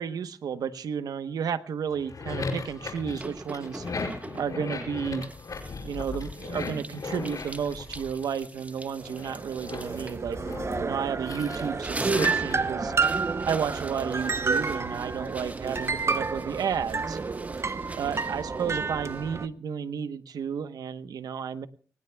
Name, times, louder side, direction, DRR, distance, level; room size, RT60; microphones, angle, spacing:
voice 1, 0.0-3.8 4.3-5.2 5.8-10.4 10.8-12.9 13.4-17.2 17.9-21.7, right 7 dB, 85° right, 11 dB, 1.0 m, -32 dB
sound 1, 1.9-8.6 9.0-12.9, left 4 dB, 65° left, 5.5 m, -37 dB
sound 2, 3.2-4.7 5.2-11.3 11.6-19.5, right 2 dB, 20° right, 1.3 m, -42 dB
sound 3, 9.0-19.5, right 4 dB, 45° right, 0.8 m, -30 dB
25.5 x 19.5 x 2.3 m, 0.40 s
cardioid pair, 50°, 6 cm